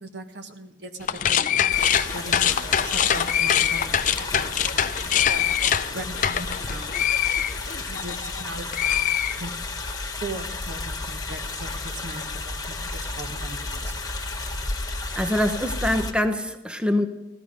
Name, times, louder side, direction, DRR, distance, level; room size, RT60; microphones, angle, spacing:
voice 1, 0.0-4.0 4.4-4.8 5.2-6.9 7.8-9.5 10.2-14.0, right 2 dB, 75° right, 6 dB, 1.4 m, -39 dB
sound 1, 1.0-8.4 8.7-9.9, left 9 dB, 45° left, 0.5 m, -24 dB
sound 2, 1.7-16.1, left 3 dB, 20° left, 1.4 m, -33 dB
voice 2, 15.2-17.1, left 1 dB, 5° right, 8 dB, 0.8 m, -24 dB
16.5 x 13.5 x 5.1 m, 0.99 s
head